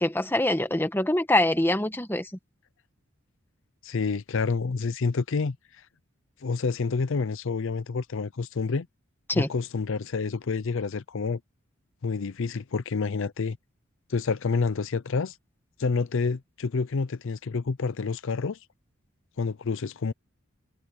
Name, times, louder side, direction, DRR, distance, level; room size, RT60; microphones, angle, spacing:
voice 1, 0.0-2.3 9.3-9.5, left 1 dB, 10° left, 1.4 m, -24 dB
voice 2, 3.8-5.6 6.4-8.9 9.3-11.4 12.0-13.6 14.1-15.4 15.8-18.6 19.4-20.1, left 4 dB, 65° left, 0.5 m, -28 dB
head